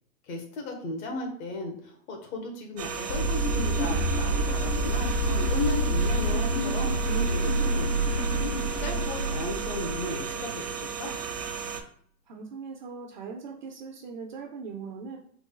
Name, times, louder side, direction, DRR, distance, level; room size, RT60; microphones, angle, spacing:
voice 1, 0.3-8.0 8.8-11.1, left 2 dB, 60° left, 3 dB, 1.4 m, -35 dB
sound 1, 2.8-11.8, right 6 dB, 85° right, 0.9 m, -35 dB
sound 2, 3.1-10.5, right 1 dB, 90° left, 1.0 m, -27 dB
voice 2, 12.3-15.2, right 5 dB, 35° right, 2 dB, 0.4 m, -40 dB
3.9 x 3.0 x 3.8 m, 0.63 s
hypercardioid pair, 140°, 48 cm